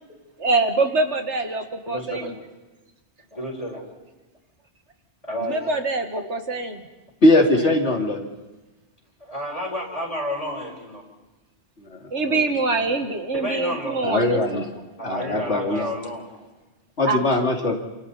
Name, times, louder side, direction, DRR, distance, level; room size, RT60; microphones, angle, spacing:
voice 1, 0.4-2.3 5.4-6.8 7.6-7.7 12.1-14.6 17.0-17.2, right 3 dB, 75° right, 6 dB, 2.1 m, -24 dB
voice 2, 1.9-2.3 3.3-3.8 5.3-5.8 9.2-11.0 12.6-12.9 13.3-14.0 14.6-16.2, equal, 30° left, -2 dB, 4.6 m, -31 dB
voice 3, 7.2-8.3 12.3-12.4 14.0-14.7 15.0-15.9 17.0-17.8, left 1 dB, 70° left, 2 dB, 3.0 m, -20 dB
29.0 x 27.0 x 4.2 m, 1.1 s
omnidirectional pair, 1.2 m